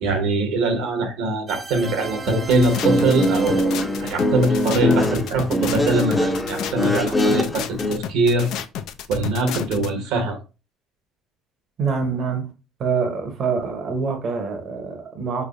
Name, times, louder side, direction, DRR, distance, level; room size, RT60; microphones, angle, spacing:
voice 1, 0.0-8.5 9.1-10.4, right 2 dB, 75° right, 1.0 m, -22 dB
sound 1, 1.5-6.1, right 5 dB, 30° right, 0.4 m, -37 dB
sound 2, 2.3-9.9, left 9 dB, 70° left, 0.4 m, -31 dB
Guitar, 2.6-8.0, left 1 dB, 15° left, 0.6 m, -22 dB
voice 2, 11.8-12.5 12.8-15.5, right 5 dB, 50° right, 0.8 m, -25 dB
3.3 x 3.2 x 2.5 m
supercardioid pair, 80°, 0 cm